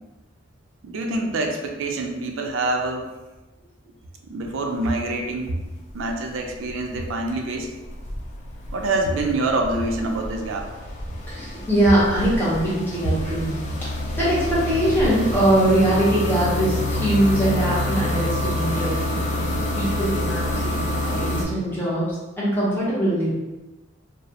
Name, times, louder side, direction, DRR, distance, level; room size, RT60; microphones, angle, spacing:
voice 1, 0.8-3.1 4.2-5.7 5.9-7.7 8.7-10.7, right 2 dB, 70° right, 3 dB, 0.3 m, -26 dB
sound 1, 4.4-5.0 5.2-21.4, left 1 dB, 35° left, 0.4 m, -28 dB
voice 2, 11.3-13.5 13.8-13.9 14.2-19.0 19.5-23.3, right 1 dB, 10° left, -9 dB, 0.8 m, -22 dB
2.3 x 2.0 x 2.8 m, 1.1 s
head